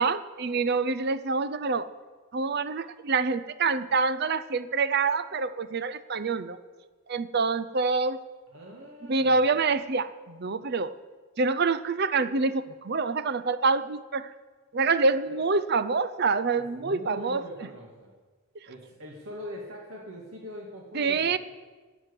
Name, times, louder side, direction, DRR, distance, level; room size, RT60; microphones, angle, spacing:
voice 1, 0.0-1.9 2.3-6.6 7.1-8.2 9.1-11.0 11.4-14.3 14.7-17.4 20.9-21.4, right 4 dB, 50° right, 14 dB, 0.6 m, -26 dB
voice 2, 8.5-9.6 15.3-15.4 16.6-18.1 18.7-21.4, equal, 80° right, -2 dB, 2.2 m, -42 dB
15.0 x 6.4 x 9.8 m, 1.4 s
head